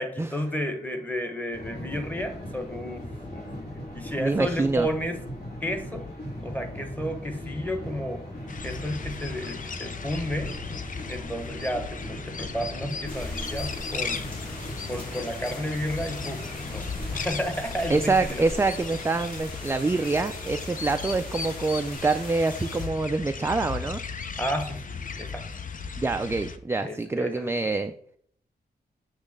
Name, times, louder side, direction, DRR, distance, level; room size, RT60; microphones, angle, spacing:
voice 1, 0.0-3.5 3.9-5.2 5.6-6.1 6.4-8.2 8.6-10.6 11.1-14.4 14.9-18.5 24.4-25.5 26.8-27.5, equal, 10° left, 6 dB, 1.1 m, -32 dB
sound 1, 1.5-17.3, left 1 dB, 65° left, 2.8 m, -39 dB
voice 2, 4.2-4.9 17.9-24.0 26.0-27.9, right 3 dB, 15° right, 8 dB, 0.3 m, -26 dB
sound 2, 8.5-26.6, left 5 dB, 50° left, 0.6 m, -37 dB
sound 3, 13.1-22.9, left 1 dB, 30° left, 3.0 m, -41 dB
8.2 x 3.2 x 6.5 m, 0.63 s
wide cardioid pair, 140°, 17 cm